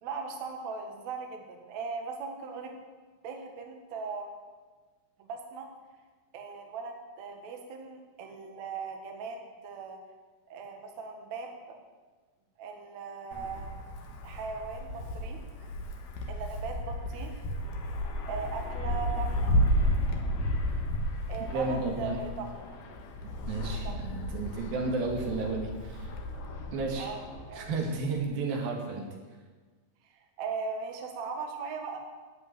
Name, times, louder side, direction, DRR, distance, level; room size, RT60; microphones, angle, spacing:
voice 1, 0.0-2.7 3.2-4.3 5.2-5.7 6.3-9.4 9.6-10.0 10.5-11.8 12.6-13.8 14.2-15.4 16.3-17.4 18.3-19.5 21.3-22.7 23.6-24.1 27.0-27.7 30.1-32.0, right 5 dB, 60° right, 2 dB, 2.5 m, -39 dB
Wind, 13.3-28.2, equal, 65° left, 2.9 m, -33 dB
voice 2, 21.5-22.2 23.5-26.2 26.7-27.1 27.5-29.1, right 3 dB, 80° right, 1 dB, 3.7 m, -32 dB
11.0 x 8.5 x 9.1 m, 1.4 s
omnidirectional pair, 4.1 m